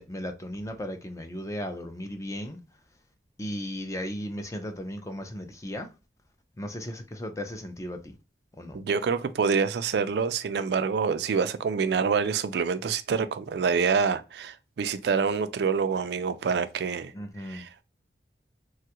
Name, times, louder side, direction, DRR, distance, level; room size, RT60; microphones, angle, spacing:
voice 1, 0.0-2.6 3.4-5.9 6.6-8.2 8.6-8.8 17.1-17.6, equal, 15° left, 0.4 m, -36 dB
voice 2, 8.7-17.1 17.5-17.8, right 5 dB, 70° right, 0.4 m, -26 dB
3.2 x 2.3 x 2.8 m
head